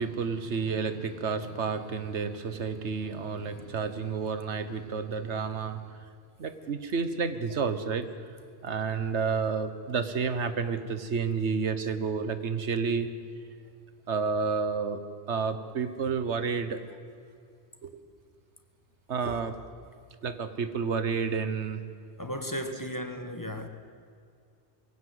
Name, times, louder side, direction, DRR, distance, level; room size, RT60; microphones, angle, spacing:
voice 1, 0.0-6.0 6.4-8.1 8.6-13.1 14.1-15.0 15.3-16.8 17.8-18.0 19.1-19.6 20.2-21.8, right 5 dB, 90° right, 10 dB, 1.5 m, -30 dB
voice 2, 22.2-23.7, equal, 20° left, 6 dB, 1.4 m, -35 dB
23.0 x 16.5 x 8.1 m, 2.3 s
omnidirectional pair, 1.1 m